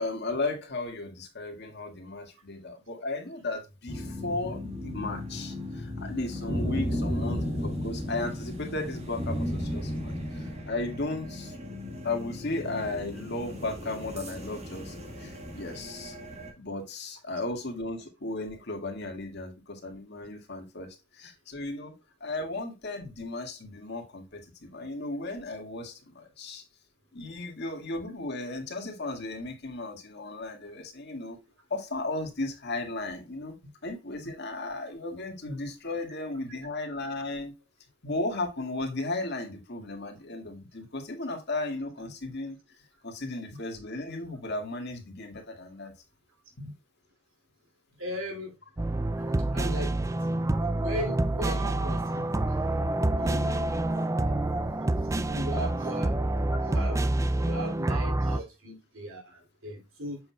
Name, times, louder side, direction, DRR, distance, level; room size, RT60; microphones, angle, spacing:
voice 1, 0.0-11.5 12.0-16.2 16.6-26.6 27.1-31.4 31.7-37.5 38.0-42.6 43.0-45.9 46.6-46.8, left 2 dB, 55° left, 2.0 m, -35 dB
sound 1, 3.9-16.5, left 1 dB, 30° right, 1.6 m, -35 dB
voice 2, 48.0-48.5 49.5-50.2 50.8-52.6 53.2-53.8 54.2-54.4 55.3-56.2 56.6-60.2, equal, 75° right, 2.9 m, -38 dB
sound 2, 48.8-58.4, right 2 dB, 15° right, 0.4 m, -27 dB
7.7 x 6.1 x 2.3 m
head